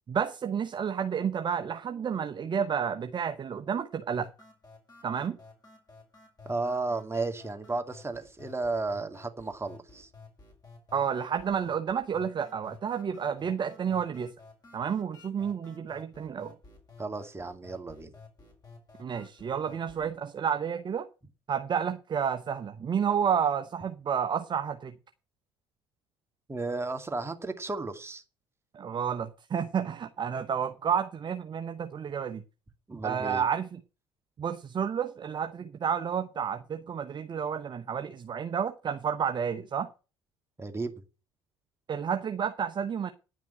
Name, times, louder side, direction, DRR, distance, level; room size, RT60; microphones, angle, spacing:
voice 1, 0.1-4.3 5.0-5.4 10.9-14.3 14.7-16.5 19.0-21.1 21.5-24.9 28.7-32.4 33.0-33.8 34.4-39.9 41.9-43.1, right 7 dB, 35° right, 1.1 m, -30 dB
sound 1, 4.1-20.1, left 3 dB, 30° left, 5.4 m, -53 dB
voice 2, 6.5-10.1 17.0-18.1 26.5-28.2 32.9-33.5 40.6-40.9, right 3 dB, 20° right, 2.3 m, -33 dB
11.0 x 6.0 x 8.7 m
figure-of-eight pair, 55°, 13 cm